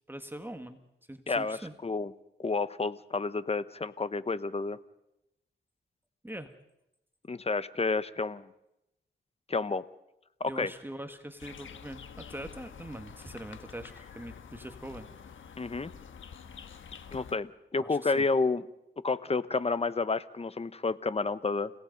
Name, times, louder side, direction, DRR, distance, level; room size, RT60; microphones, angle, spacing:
voice 1, 0.1-0.8 1.1-1.7 6.2-6.5 10.4-15.1 17.8-18.3, right 1 dB, 10° right, 7 dB, 1.7 m, -42 dB
voice 2, 1.3-2.1 2.4-4.8 7.3-8.5 9.5-9.9 10.4-10.7 15.6-15.9 17.1-18.6 19.0-21.7, left 3 dB, 30° left, 15 dB, 1.0 m, -30 dB
sound 1, 11.4-17.4, left 7 dB, 80° left, 1.4 m, -48 dB
29.5 x 17.5 x 5.3 m, 0.86 s
cardioid pair, 75°, 20 cm